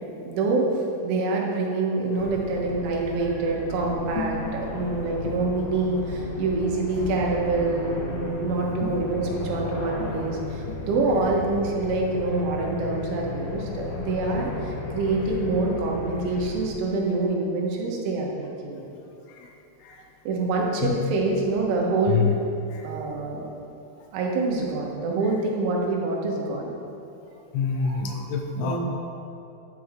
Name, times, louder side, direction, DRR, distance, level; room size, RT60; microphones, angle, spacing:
voice 1, 0.3-18.9 20.3-22.3 22.8-23.4 24.1-26.7 27.8-28.2 28.6-28.8, right 3 dB, 85° right, -1 dB, 3.8 m, -26 dB
sound 1, 2.2-16.6, left 3 dB, 70° left, 2.5 m, -34 dB
voice 2, 4.2-4.9 5.2-5.4 8.8-8.9 10.0-10.1 10.7-10.8 19.3-19.5 19.8-20.0 20.8-21.0 22.1-22.4 22.7-22.9 27.5-28.8, left 6 dB, 85° left, 3 dB, 3.0 m, -28 dB
10.5 x 9.3 x 3.6 m, 2.8 s
omnidirectional pair, 5.5 m